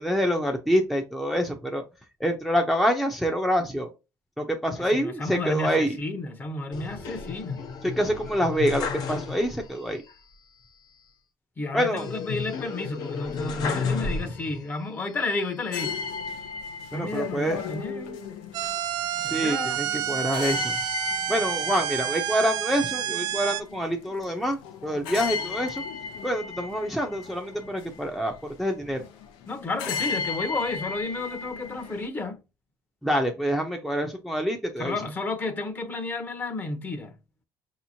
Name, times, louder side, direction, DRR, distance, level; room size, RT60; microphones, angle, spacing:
voice 1, 0.0-1.8 2.2-3.9 4.4-5.9 7.8-10.0 11.7-12.0 16.9-17.6 19.3-20.8 21.3-25.8 26.2-28.3 28.6-29.0 33.0-34.9, equal, ahead, 0.6 m, -26 dB
voice 2, 4.8-7.6 11.6-16.0 16.9-18.2 19.2-19.8 29.5-32.4 34.8-37.2, left 2 dB, 25° left, 0.8 m, -32 dB
sound 1, 6.7-9.8 10.1-10.2 12.0-14.7 15.2-16.1, left 5 dB, 60° left, 0.9 m, -32 dB
sound 2, 15.7-32.1, left 5 dB, 90° left, 0.7 m, -36 dB
sound 3, 18.5-23.6, right 12 dB, 60° right, 0.4 m, -29 dB
5.3 x 2.9 x 2.7 m
cardioid pair, 110°, 8 cm